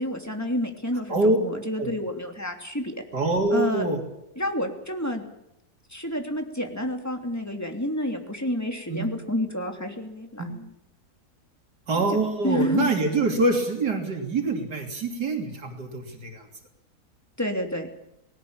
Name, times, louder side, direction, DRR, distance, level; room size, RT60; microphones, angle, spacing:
voice 1, 0.0-3.0 3.5-3.8 4.4-5.2 5.9-10.7 12.4-12.9 17.4-17.9, left 1 dB, 10° left, 4 dB, 2.9 m, -29 dB
voice 2, 3.1-4.0 8.9-9.1 10.4-10.5 11.9-16.4, right 2 dB, 85° right, 3 dB, 3.6 m, -25 dB
19.5 x 18.0 x 8.9 m, 0.81 s
omnidirectional pair, 1.7 m